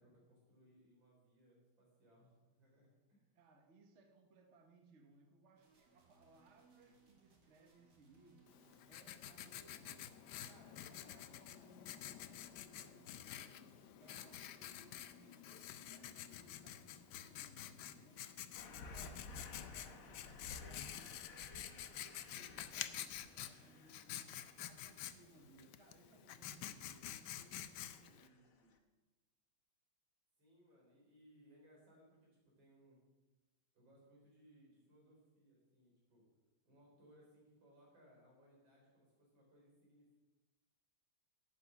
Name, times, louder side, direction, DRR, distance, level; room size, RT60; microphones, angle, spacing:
voice 1, 0.0-3.3 30.4-33.0 33.7-36.3 36.6-40.2, equal, 80° right, -3 dB, 4.9 m, -67 dB
voice 2, 3.3-8.6 8.9-10.1 10.5-13.7 14.0-18.2 18.5-24.3 24.6-28.8, right 3 dB, 45° right, 4 dB, 1.2 m, -66 dB
sound 1, 5.6-25.5, right 3 dB, 60° right, 2.5 m, -71 dB
Writing, 8.5-28.3, left 11 dB, 70° left, 1.1 m, -49 dB
sound 2, 18.5-24.9 27.0-27.5 27.9-28.5 28.7-28.8, left 3 dB, 55° left, 1.3 m, -55 dB
11.5 x 8.6 x 5.8 m, 1.1 s
omnidirectional pair, 2.1 m